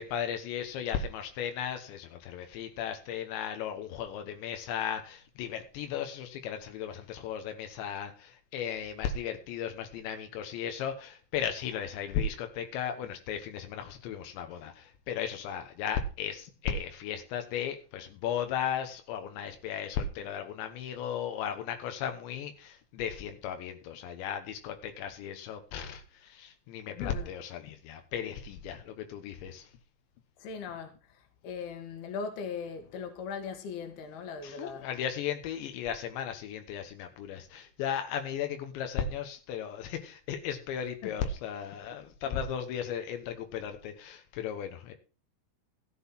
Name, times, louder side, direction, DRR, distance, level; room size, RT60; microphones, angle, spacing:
voice 1, 0.0-29.7 34.4-44.9, left 8 dB, 85° left, 3.5 m, -36 dB
voice 2, 26.9-27.3 30.4-30.9 31.4-34.9 41.0-41.2, left 6 dB, 65° left, 3.7 m, -39 dB
14.5 x 8.0 x 5.8 m
omnidirectional pair, 5.0 m